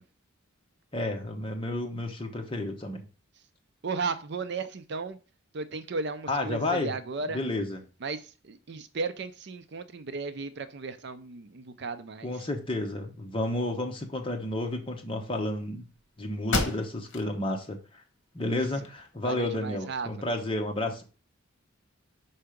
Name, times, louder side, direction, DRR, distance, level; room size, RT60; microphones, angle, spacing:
voice 1, 0.9-3.0 6.3-6.9 7.3-7.8 12.2-15.9 16.2-18.0 18.3-21.0, left 1 dB, 25° left, 1.0 m, -31 dB
voice 2, 3.8-5.2 5.5-7.4 8.0-12.3 18.5-18.6 19.2-20.1, right 4 dB, 55° right, 0.5 m, -35 dB
sound 1, 15.9-16.0 16.5-17.3 17.8-17.9 18.4-19.3, left 2 dB, 60° left, 1.2 m, -32 dB
5.7 x 4.6 x 5.1 m
head